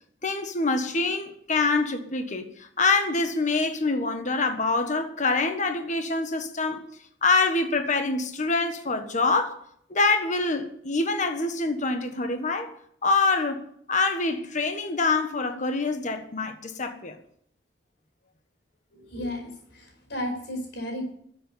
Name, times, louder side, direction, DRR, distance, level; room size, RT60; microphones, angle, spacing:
voice 1, 0.2-6.8 7.2-9.6 9.9-12.7 13.0-13.6 13.9-17.2, left 3 dB, 40° left, 1.5 m, -25 dB
voice 2, 18.9-21.1, left 1 dB, 70° left, 5.1 m, -34 dB
13.5 x 7.9 x 9.5 m
head